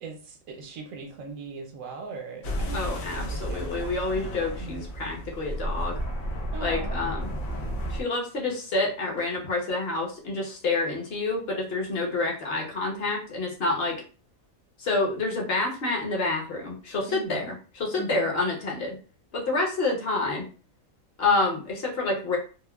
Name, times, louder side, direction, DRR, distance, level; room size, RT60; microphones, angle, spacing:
voice 1, 0.0-2.9 3.2-3.9 4.6-4.8 6.5-7.0 17.1-17.5 18.0-18.3, right 4 dB, 80° right, 3 dB, 1.0 m, -39 dB
sound 1, 2.4-8.0, equal, 75° left, 1.1 m, -32 dB
voice 2, 2.7-6.0 6.6-7.3 7.9-14.0 14.8-19.0 19.3-20.5 21.2-22.4, left 3 dB, 50° left, -1 dB, 1.0 m, -28 dB
3.5 x 2.1 x 2.2 m, 0.37 s
omnidirectional pair, 1.4 m